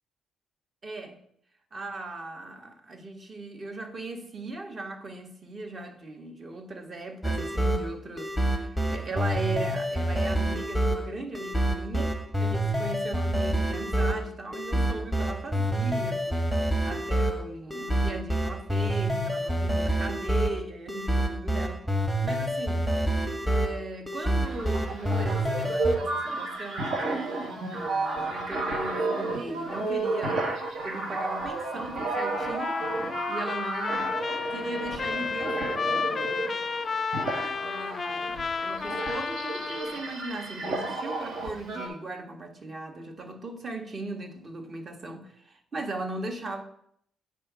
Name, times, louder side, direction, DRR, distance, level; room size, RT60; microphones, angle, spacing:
voice 1, 0.8-1.2 1.7-16.5 16.8-21.8 22.2-22.9 23.4-30.5 30.8-32.8 33.3-34.1 34.5-36.1 37.3-46.6, right 2 dB, 40° right, 4 dB, 1.3 m, -38 dB
sound 1, 7.2-26.0, right 1 dB, ahead, 0.9 m, -27 dB
sound 2, 24.4-41.9, right 2 dB, 65° right, 1.3 m, -32 dB
Trumpet, 32.1-40.1, left 5 dB, 35° left, 0.3 m, -32 dB
8.7 x 3.7 x 5.0 m, 0.68 s
cardioid pair, 90°, 0 cm